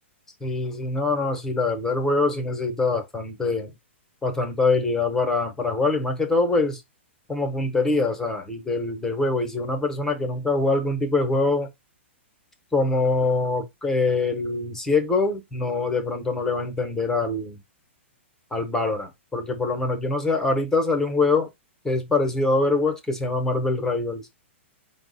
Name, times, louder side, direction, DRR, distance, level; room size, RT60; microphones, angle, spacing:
voice 1, 0.4-3.7 4.2-6.8 7.3-11.7 12.7-17.6 18.5-21.5 21.8-24.4, left 3 dB, 5° left, 0.8 m, -24 dB
4.4 x 2.1 x 3.9 m
hypercardioid pair, 135°, 7 cm